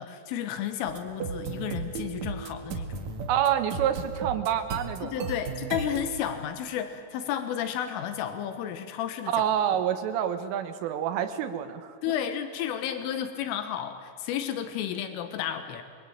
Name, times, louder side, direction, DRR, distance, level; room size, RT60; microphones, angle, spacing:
voice 1, 0.0-3.1 5.0-9.4 12.0-15.8, left 9 dB, 90° left, 9 dB, 3.9 m, -32 dB
sound 1, 0.9-6.2, right 5 dB, 55° right, 2.2 m, -35 dB
voice 2, 3.3-5.3 9.3-12.0, right 10 dB, 85° right, 9 dB, 3.9 m, -27 dB
26.0 x 23.5 x 8.9 m, 2.3 s
omnidirectional pair, 5.6 m